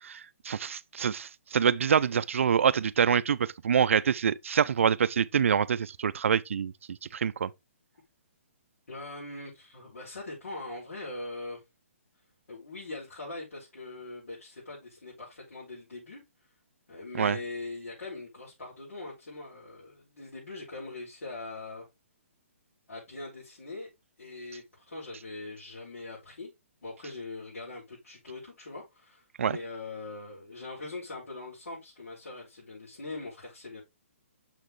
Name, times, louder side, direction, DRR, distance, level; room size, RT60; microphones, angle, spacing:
voice 1, 0.0-7.5 17.1-17.4 29.4-29.6, right 7 dB, 65° right, 0.5 m, -26 dB
voice 2, 8.9-11.6 12.5-16.2 16.9-21.8 22.9-23.9 24.2-26.5 26.8-33.8, left 2 dB, 90° left, 5.1 m, -41 dB
6.5 x 6.0 x 3.2 m
hypercardioid pair, 170°, 7 cm